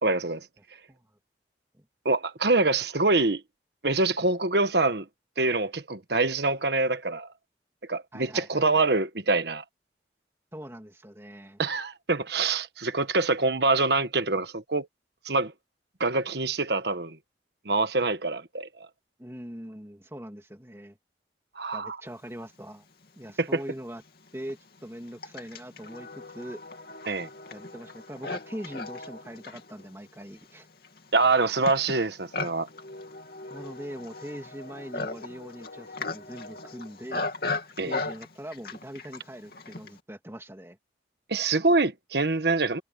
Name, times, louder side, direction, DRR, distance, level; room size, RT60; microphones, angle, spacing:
voice 1, 0.0-0.5 2.0-3.4 3.8-5.1 5.4-7.3 7.9-9.6 11.6-14.9 15.2-15.5 16.0-17.2 17.6-18.7 21.6-22.0 23.4-23.6 27.1-27.3 31.1-32.7 37.8-38.0 41.3-42.8, right 3 dB, 65° right, 1.4 m, -25 dB
voice 2, 8.1-8.8 10.5-11.6 19.2-21.0 21.7-22.8 23.2-24.0 24.3-26.6 27.5-30.7 33.5-37.2 37.9-40.8, equal, 15° right, 2.8 m, -41 dB
Livestock farm animals working animals, 23.2-23.3 24.1-40.0, left 3 dB, 55° left, 2.9 m, -38 dB
head